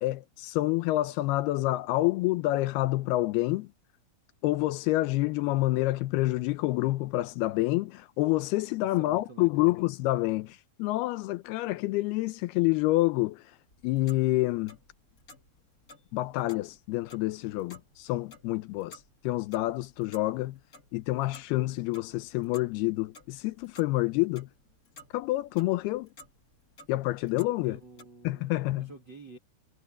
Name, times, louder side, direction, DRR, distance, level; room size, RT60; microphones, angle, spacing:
voice 1, 0.0-3.7 4.4-13.4 13.8-14.8 16.1-19.0 19.2-20.6 20.9-24.5 25.1-26.1 26.9-27.8 28.2-28.9, left 18 dB, 85° left, 2.3 m, -28 dB
voice 2, 8.8-9.8 27.6-29.4, right 3 dB, 55° right, 1.2 m, -49 dB
Clock, 13.7-28.0, left 2 dB, 40° left, 1.2 m, -56 dB
omnidirectional pair, 5.3 m